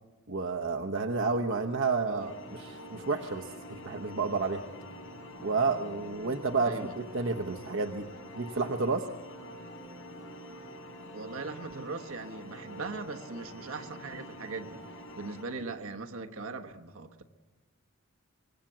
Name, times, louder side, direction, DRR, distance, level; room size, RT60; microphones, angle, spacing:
voice 1, 0.3-4.6 5.4-8.1 8.3-9.1, right 4 dB, 60° right, 0.9 m, -30 dB
sound 1, 2.2-15.4, equal, 70° left, 6.2 m, -46 dB
voice 2, 6.6-6.9 11.1-14.8 15.1-17.2, right 4 dB, 80° right, 1.3 m, -40 dB
25.0 x 20.5 x 7.4 m
head